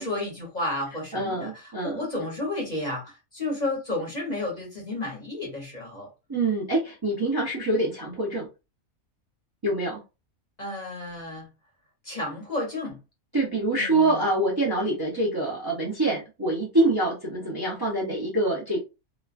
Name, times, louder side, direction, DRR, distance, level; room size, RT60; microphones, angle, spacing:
voice 1, 0.0-6.1 10.6-11.5 12.0-13.0 13.7-14.2, left 2 dB, 35° left, 0.9 m, -32 dB
voice 2, 1.1-2.1 6.3-8.5 9.6-10.0 13.3-18.8, right 2 dB, 25° right, 0.6 m, -25 dB
3.0 x 2.2 x 2.4 m
omnidirectional pair, 1.5 m